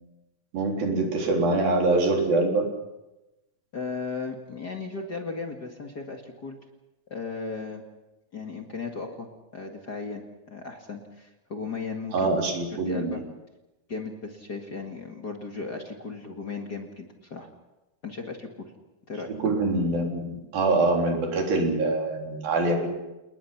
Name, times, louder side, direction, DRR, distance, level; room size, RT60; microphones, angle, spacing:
voice 1, 0.5-2.7 12.1-13.1 19.3-22.9, right 2 dB, 90° right, 1 dB, 5.6 m, -24 dB
voice 2, 3.7-6.6 7.1-7.8 8.3-9.3 9.5-12.3 12.7-13.2 13.9-17.5 18.0-18.7 19.1-19.3, left 4 dB, 35° left, 2 dB, 1.9 m, -36 dB
29.5 x 20.0 x 6.0 m, 1.0 s
omnidirectional pair, 4.0 m